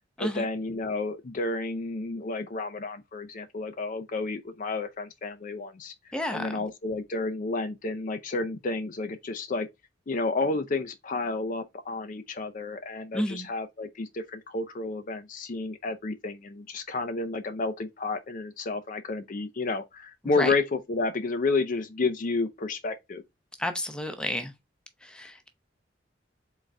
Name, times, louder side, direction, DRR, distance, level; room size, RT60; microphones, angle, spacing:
voice 1, 0.2-5.9 6.3-9.7 10.1-23.2, left 3 dB, 45° left, 0.5 m, -31 dB
voice 2, 6.1-6.5 13.1-13.5 20.4-20.5 23.6-24.5 25.0-25.5, left 1 dB, 5° left, 0.7 m, -31 dB
4.0 x 3.7 x 3.3 m
head